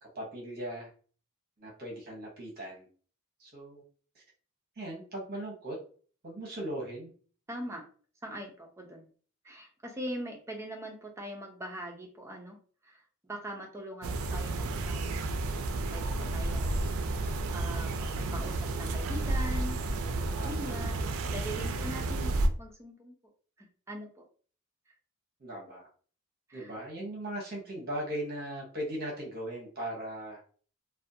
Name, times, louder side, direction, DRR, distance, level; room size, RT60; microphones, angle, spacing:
voice 1, 0.1-0.9 1.6-2.9 3.4-3.8 4.1-4.2 4.8-5.8 6.2-7.1 20.4-20.8 25.4-25.8 26.5-30.4, right 1 dB, 45° right, -2 dB, 0.8 m, -38 dB
voice 2, 7.5-7.8 8.2-9.0 9.4-12.6 12.8-13.0 13.3-15.1 15.9-16.8 17.2-21.1 21.3-23.1 23.6-24.2 26.5-26.7, equal, 15° right, 1 dB, 0.5 m, -42 dB
sound 1, 14.0-22.5, right 2 dB, 75° right, 0.3 m, -31 dB
2.5 x 2.2 x 2.6 m, 0.42 s
head